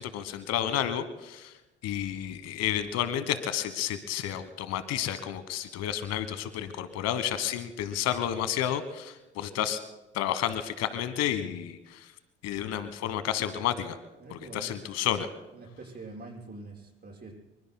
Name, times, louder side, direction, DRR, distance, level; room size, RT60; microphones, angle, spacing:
voice 1, 0.0-1.5 1.8-9.8 10.1-12.1 12.4-14.0 14.3-15.3, left 10 dB, 60° left, 12 dB, 1.3 m, -31 dB
voice 2, 14.2-14.9 15.5-17.3, right 3 dB, 35° right, -2 dB, 6.4 m, -45 dB
26.0 x 24.5 x 2.2 m, 1.1 s
hypercardioid pair, 50°, 29 cm